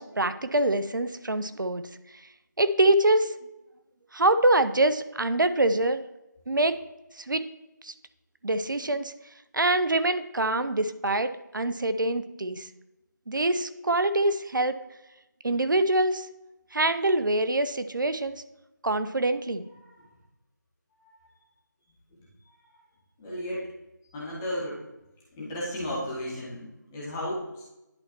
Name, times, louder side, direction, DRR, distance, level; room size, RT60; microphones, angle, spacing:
voice 1, 0.0-1.9 2.6-3.3 4.1-6.0 6.5-6.8 7.2-7.4 7.8-7.9 8.4-9.1 9.5-12.7 13.3-14.8 15.4-16.3 16.7-18.4 18.8-19.7, right 2 dB, 80° right, 11 dB, 0.6 m, -25 dB
voice 2, 23.2-23.7 24.1-24.8 25.3-27.6, equal, 10° left, -6 dB, 1.0 m, -34 dB
10.5 x 4.3 x 2.9 m, 0.95 s
figure-of-eight pair, 165°, 10 cm